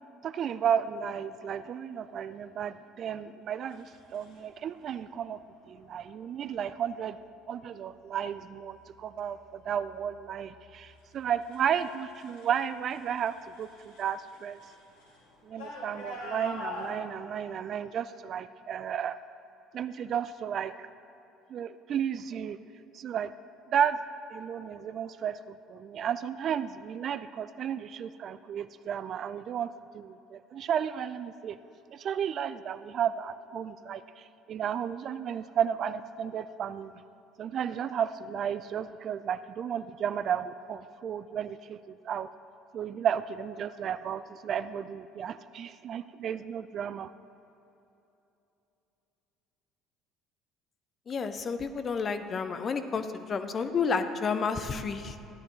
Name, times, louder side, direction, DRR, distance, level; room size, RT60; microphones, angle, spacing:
voice 1, 0.2-3.9 4.1-5.4 5.7-7.2 7.5-14.6 15.4-19.2 19.7-20.9 21.5-22.6 22.9-23.3 23.7-24.0 24.3-31.6 31.9-36.9 37.4-42.3 42.7-47.1, right 8 dB, 45° right, 14 dB, 0.3 m, -33 dB
sound 1, 3.7-4.4 5.5-5.9 6.4-6.9 7.4-8.0 8.3-12.6 12.9-16.9, left 1 dB, 75° left, 2.2 m, -45 dB
voice 2, 51.1-55.1, left 5 dB, 35° left, 10 dB, 0.7 m, -30 dB
13.5 x 11.5 x 3.1 m, 2.9 s
figure-of-eight pair, 60°, 0 cm